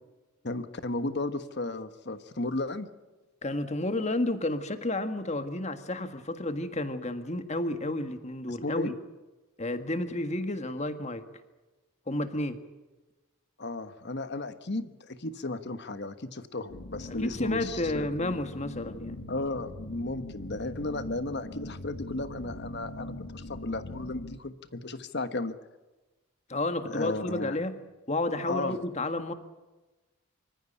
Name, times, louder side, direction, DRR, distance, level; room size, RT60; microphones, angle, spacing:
voice 1, 0.4-2.9 8.5-8.9 13.6-18.1 19.3-25.6 26.8-27.6 28.4-28.8, left 2 dB, 50° left, 11 dB, 1.3 m, -34 dB
voice 2, 3.4-8.9 9.6-11.2 12.1-12.6 17.2-19.2 26.5-27.8 28.1-29.3, left 2 dB, 30° left, 9 dB, 1.7 m, -31 dB
sound 1, 16.7-24.4, left 1 dB, 80° left, 2.1 m, -42 dB
25.0 x 14.5 x 10.0 m, 1.1 s
head